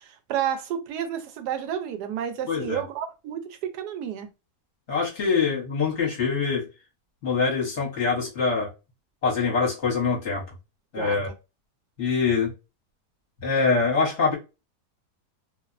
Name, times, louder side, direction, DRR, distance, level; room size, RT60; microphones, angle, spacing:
voice 1, 0.0-4.3 11.0-11.3, right 9 dB, 90° right, 1.1 m, -31 dB
voice 2, 2.5-2.8 4.9-6.7 7.2-8.7 9.2-10.4 10.9-11.3 12.0-12.5 13.4-14.3, left 5 dB, 50° left, 1.1 m, -24 dB
2.8 x 2.0 x 2.3 m
omnidirectional pair, 1.7 m